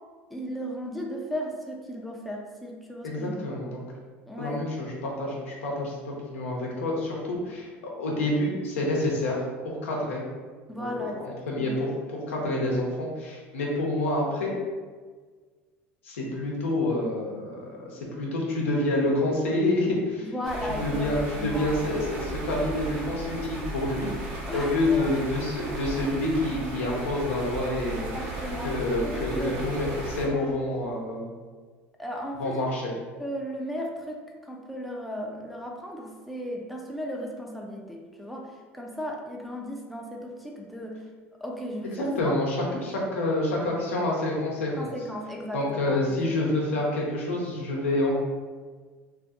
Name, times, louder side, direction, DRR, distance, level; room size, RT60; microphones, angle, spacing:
voice 1, 0.3-3.4 4.3-4.7 10.7-11.8 20.2-22.3 24.5-25.2 28.0-28.7 29.0-29.5 30.3-30.6 32.0-32.7 33.2-41.0 41.4-42.4 42.7-42.9 44.8-46.1 46.4-46.6, equal, ahead, -1 dB, 0.4 m, -36 dB
voice 2, 3.0-3.8 4.4-7.7 7.9-9.4 9.8-10.2 10.8-14.5 16.0-20.3 20.8-28.1 28.6-31.3 32.4-32.9 42.0-42.6 42.8-44.9 45.5-48.1, left 1 dB, 85° left, -2 dB, 0.6 m, -28 dB
sound 1, 20.4-30.3, right 2 dB, 60° right, 0.8 m, -35 dB
2.5 x 2.5 x 2.5 m, 1.5 s
hypercardioid pair, 80°, 7 cm